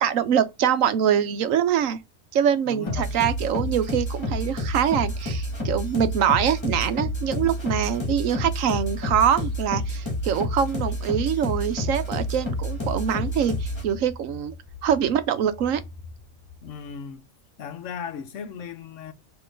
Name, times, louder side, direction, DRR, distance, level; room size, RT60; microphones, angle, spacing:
voice 1, 0.0-2.0 2.3-14.5 14.8-15.8, right 8 dB, 75° right, 1.1 m, -24 dB
voice 2, 2.7-3.1 16.6-17.3 17.6-19.1, left 7 dB, 65° left, 1.0 m, -38 dB
sound 1, 2.9-13.9, left 1 dB, 20° left, 1.5 m, -29 dB
sound 2, 11.4-17.1, left 3 dB, 40° left, 0.7 m, -46 dB
6.1 x 3.0 x 5.1 m
omnidirectional pair, 1.4 m